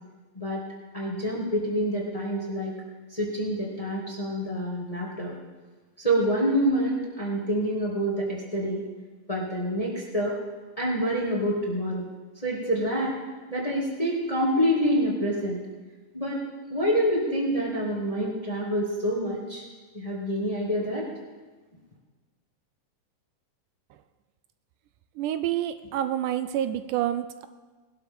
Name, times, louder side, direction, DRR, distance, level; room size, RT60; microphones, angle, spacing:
voice 1, 0.9-2.7 3.1-5.3 6.0-8.8 9.3-10.3 10.8-12.0 12.4-13.1 13.5-15.6 16.1-16.4 16.7-19.6 19.9-21.1, equal, 15° left, -4 dB, 1.6 m, -27 dB
voice 2, 25.2-27.5, right 11 dB, 80° right, 11 dB, 2.0 m, -28 dB
21.0 x 12.0 x 3.7 m, 1.3 s
omnidirectional pair, 3.7 m